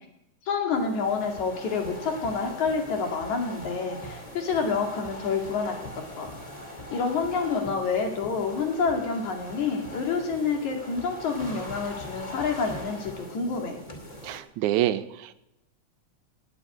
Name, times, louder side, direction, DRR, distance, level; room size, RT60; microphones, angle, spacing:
voice 1, 0.5-5.7 6.2-6.3 6.9-13.8, left 5 dB, 70° left, 3 dB, 3.7 m, -28 dB
sound 1, 0.7-14.4, left 1 dB, 15° left, 2.1 m, -41 dB
voice 2, 14.2-15.3, right 13 dB, 80° right, 12 dB, 2.1 m, -27 dB
19.5 x 8.4 x 8.4 m, 0.87 s
omnidirectional pair, 3.5 m